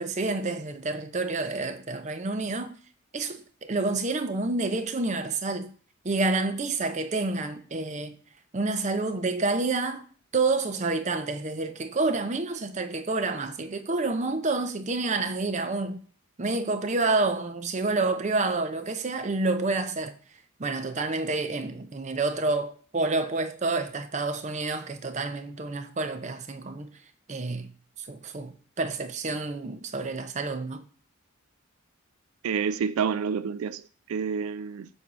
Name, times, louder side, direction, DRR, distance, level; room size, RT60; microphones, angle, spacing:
voice 1, 0.0-2.7 3.1-5.7 6.0-8.2 8.5-10.0 10.3-16.0 16.4-20.1 20.6-26.9 27.3-27.7 28.0-30.8, right 3 dB, 35° right, 0.6 m, -28 dB
voice 2, 32.4-34.9, right 6 dB, 85° right, 0.4 m, -29 dB
7.7 x 2.7 x 6.0 m
head